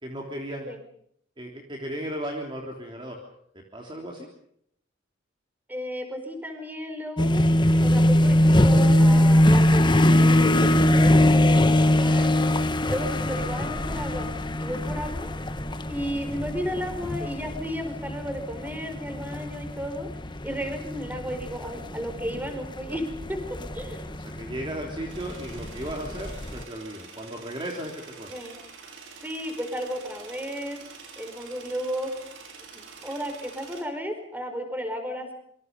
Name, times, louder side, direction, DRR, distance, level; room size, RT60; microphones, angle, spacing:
voice 1, 0.0-0.7 1.4-3.2 3.7-4.3 15.9-16.0 23.8-28.3, right 1 dB, 25° right, 1 dB, 3.4 m, -36 dB
voice 2, 5.7-7.4 7.8-14.3 14.6-15.3 15.9-20.1 20.4-23.4 23.7-24.1 28.3-28.6 29.2-30.8 31.2-32.1 32.6-35.3, equal, 10° right, 6 dB, 4.7 m, -33 dB
sound 1, 7.2-26.6, left 1 dB, 25° left, 1.3 m, -22 dB
sound 2, 25.1-33.8, right 5 dB, 75° right, 5.3 m, -46 dB
27.0 x 25.0 x 5.4 m, 0.70 s
head